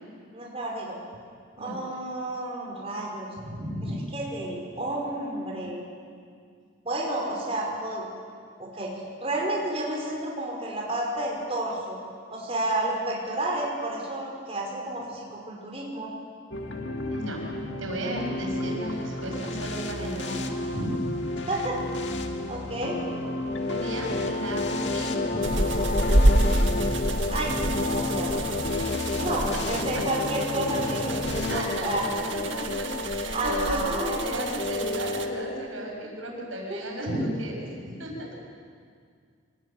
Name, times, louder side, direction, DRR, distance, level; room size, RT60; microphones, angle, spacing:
voice 1, 0.3-1.0 1.6-3.3 3.8-5.8 6.8-8.1 8.6-8.9 9.2-12.0 12.3-16.1 21.5-21.8 22.5-23.0 27.3-27.5 27.9-28.3 29.2-32.0 33.3-34.2 36.7-36.8, right 1 dB, 30° right, -2 dB, 5.1 m, -31 dB
voice 2, 3.4-4.0 17.1-17.4 17.8-21.1 23.7-25.7 28.2-28.3 31.5-37.7 38.0-38.3, right 1 dB, 80° right, 0 dB, 7.3 m, -34 dB
sound 1, 16.5-31.8, left 1 dB, 60° left, 2.1 m, -32 dB
sound 2, 23.5-35.7, left 3 dB, 40° left, 1.0 m, -32 dB
sound 3, 25.4-35.3, right 1 dB, 65° right, 1.9 m, -28 dB
25.0 x 21.0 x 9.3 m, 2.1 s
head